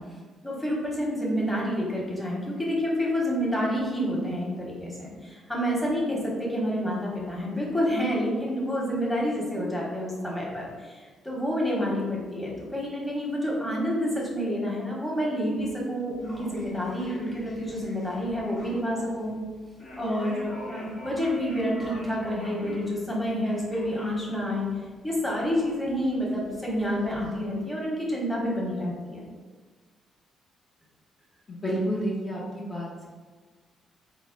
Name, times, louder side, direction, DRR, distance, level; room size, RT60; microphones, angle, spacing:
voice 1, 0.4-19.3 19.9-24.7 25.0-29.2, equal, 5° left, -5 dB, 1.2 m, -28 dB
sound 1, 16.1-27.4, left 1 dB, 50° left, 1.3 m, -45 dB
voice 2, 31.5-33.1, equal, 30° left, -7 dB, 0.8 m, -30 dB
3.9 x 2.1 x 3.9 m, 1.4 s
cardioid pair, 90°, 0 cm